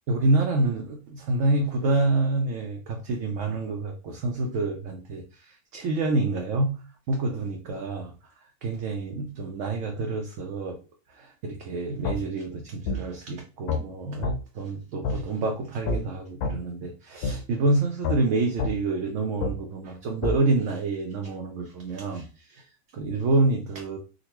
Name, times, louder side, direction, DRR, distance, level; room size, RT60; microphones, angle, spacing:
voice 1, 0.1-6.8 7.1-8.1 8.6-10.8 11.1-22.6 22.9-24.0, right 2 dB, 65° right, 2 dB, 0.8 m, -27 dB
sound 1, 12.0-12.2 12.9-13.0 13.7-13.8 14.2-14.4 15.0-15.2 15.9-16.0 16.4-16.6 17.2-17.4 18.0-18.2 18.6-18.7 19.4-19.5 20.2-20.4, left 3 dB, 90° left, 1.1 m, -26 dB
3.7 x 2.2 x 2.9 m, 0.34 s
omnidirectional pair, 1.6 m